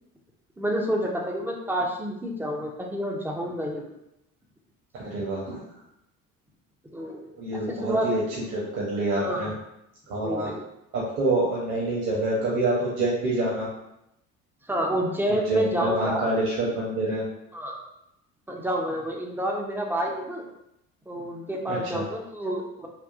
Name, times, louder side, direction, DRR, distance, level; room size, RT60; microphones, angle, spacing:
voice 1, 0.6-3.9 6.9-7.3 7.7-8.2 9.2-9.5 10.2-10.6 14.7-16.2 17.5-17.8 18.5-20.5 21.1-22.9, equal, 5° right, 0 dB, 0.4 m, -29 dB
voice 2, 5.0-5.6 7.4-8.2 8.5-9.5 10.1-10.5 10.9-13.7 15.2-17.2 21.7-22.1, right 2 dB, 55° right, -6 dB, 1.0 m, -27 dB
3.6 x 2.3 x 2.4 m, 0.83 s
figure-of-eight pair, 60°, 41 cm